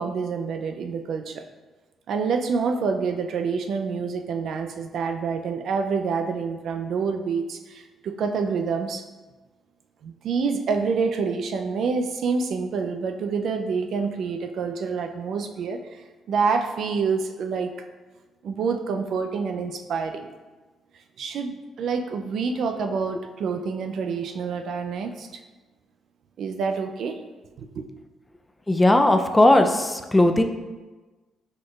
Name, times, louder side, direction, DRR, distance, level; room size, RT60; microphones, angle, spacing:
voice 1, 0.0-1.4 2.1-9.0 10.0-17.7 18.4-20.3 21.2-25.4 26.4-27.2 27.6-27.8, right 5 dB, 70° right, 6 dB, 0.4 m, -27 dB
voice 2, 28.7-30.4, left 1 dB, 15° left, 6 dB, 0.4 m, -18 dB
4.6 x 4.3 x 2.3 m, 1.2 s
cardioid pair, 90°, 0 cm